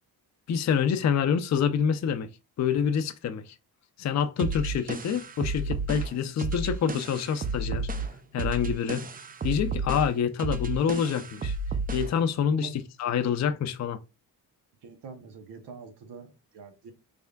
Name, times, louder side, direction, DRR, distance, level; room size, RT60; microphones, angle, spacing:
voice 1, 0.5-2.3 2.6-3.5 4.0-7.9 8.3-9.1 9.4-11.6 11.9-12.7 13.0-14.0, left 7 dB, 45° left, 0.4 m, -27 dB
sound 1, 4.4-12.2, right 3 dB, 25° right, 0.4 m, -32 dB
voice 2, 14.8-16.9, right 5 dB, 80° right, 0.8 m, -44 dB
3.5 x 3.4 x 2.2 m
cardioid pair, 80°, 40 cm